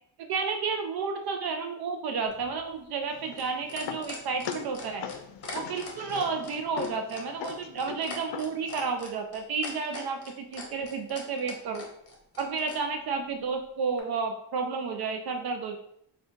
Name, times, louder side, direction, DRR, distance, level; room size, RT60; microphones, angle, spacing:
voice 1, 0.2-5.1 5.5-11.9 12.4-15.8, right 5 dB, 65° right, 4 dB, 0.5 m, -31 dB
sound 1, 2.3-12.8 14.0-14.1, left 3 dB, 35° left, 1.0 m, -42 dB
sound 2, 3.1-8.9, left 8 dB, 80° left, 0.5 m, -41 dB
4.4 x 2.4 x 4.4 m, 0.73 s
wide cardioid pair, 180°, 41 cm